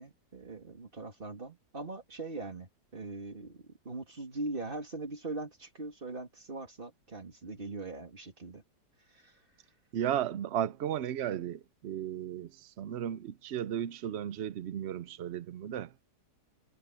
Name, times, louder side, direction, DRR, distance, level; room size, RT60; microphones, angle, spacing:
voice 1, 0.0-8.6 9.1-9.3, right 2 dB, 30° right, 2.8 m, -41 dB
voice 2, 9.9-15.9, right 10 dB, 75° right, 0.6 m, -35 dB
omnidirectional pair, 1.9 m